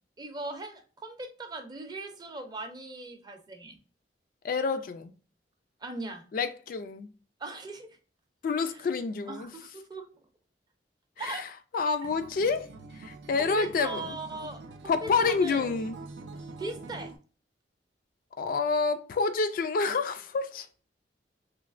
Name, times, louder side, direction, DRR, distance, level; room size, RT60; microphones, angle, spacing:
voice 1, 0.2-3.8 5.8-6.3 7.4-8.0 8.7-8.8 9.3-10.1 11.2-11.5 13.4-15.7 16.6-17.1, right 2 dB, 25° right, 0.5 m, -39 dB
voice 2, 4.4-5.1 6.3-7.1 8.4-9.5 11.2-14.2 14.9-16.0 18.4-20.7, left 4 dB, 50° left, 0.3 m, -28 dB
Acoustic guitar, 12.0-17.2, right 3 dB, 80° right, 0.4 m, -45 dB
3.1 x 2.9 x 2.4 m
head